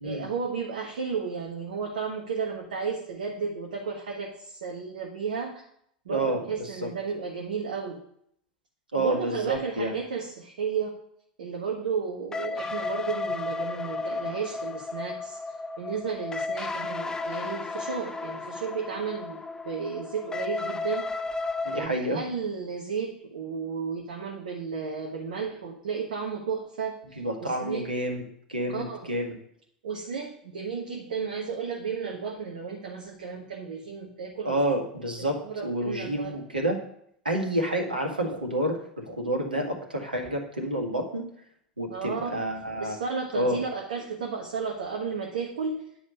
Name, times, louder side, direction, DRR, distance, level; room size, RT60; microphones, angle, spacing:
voice 1, 0.0-5.6 6.0-8.0 9.0-11.0 11.4-15.4 15.8-21.1 21.7-27.9 28.7-29.1 29.8-34.5 35.2-36.3 41.9-42.4 42.8-45.9, right 5 dB, 65° right, 0 dB, 1.4 m, -33 dB
voice 2, 6.1-6.9 8.9-10.0 21.6-22.2 27.2-28.2 28.5-29.4 34.4-36.8 37.3-41.3 41.8-43.0 43.3-43.6, right 1 dB, 80° right, 2 dB, 1.9 m, -29 dB
sound 1, 12.3-21.9, left 3 dB, 15° left, 0.7 m, -33 dB
9.9 x 5.5 x 7.8 m, 0.71 s
figure-of-eight pair, 80°, 5 cm